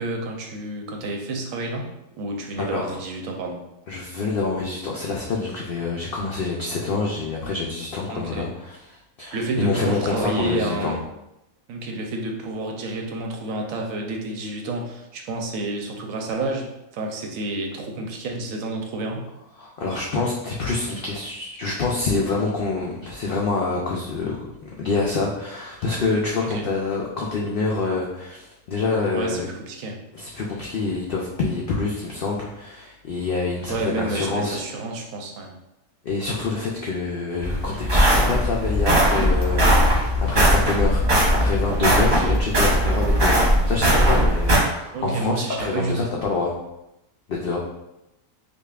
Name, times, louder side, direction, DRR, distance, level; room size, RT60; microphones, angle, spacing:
voice 1, 0.0-1.9 2.2-3.6 8.1-8.5 9.3-11.0 11.7-19.3 26.4-26.6 29.1-30.0 33.7-35.5 42.1-42.4 44.9-46.1, right 2 dB, 75° right, 2 dB, 1.0 m, -29 dB
voice 2, 2.6-3.0 3.9-11.0 19.6-29.5 30.1-34.6 36.0-46.6 47.3-47.6, left 3 dB, 90° left, -2 dB, 0.4 m, -26 dB
sound 1, 37.4-44.6, equal, 40° right, 0.9 m, -19 dB
5.1 x 2.3 x 2.3 m, 0.90 s
omnidirectional pair, 1.5 m